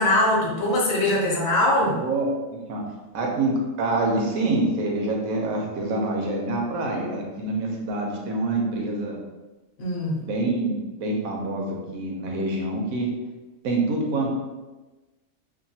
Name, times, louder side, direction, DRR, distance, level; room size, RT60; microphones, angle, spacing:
voice 1, 0.0-2.0 9.8-10.2, left 1 dB, 55° left, -2 dB, 0.8 m, -22 dB
voice 2, 1.8-2.3 2.7-2.8 3.1-9.2 10.2-13.1 13.6-14.3, right 2 dB, 90° right, 0 dB, 1.0 m, -26 dB
2.8 x 2.2 x 2.7 m, 1.2 s
omnidirectional pair, 1.4 m